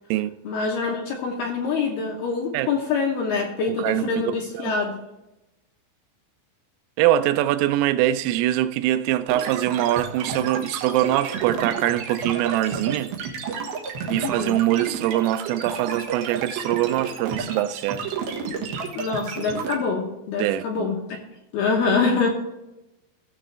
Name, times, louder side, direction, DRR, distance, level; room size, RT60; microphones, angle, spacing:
voice 1, 0.5-5.0 14.1-14.6 18.9-21.0 21.5-22.3, left 4 dB, 75° left, 2.4 m, -25 dB
voice 2, 3.7-4.7 7.0-13.1 14.1-18.1 20.4-21.0, right 13 dB, 85° right, 3.2 m, -23 dB
sound 1, 9.3-19.7, right 6 dB, 65° right, 2.7 m, -31 dB
16.5 x 7.1 x 3.3 m
omnidirectional pair, 5.8 m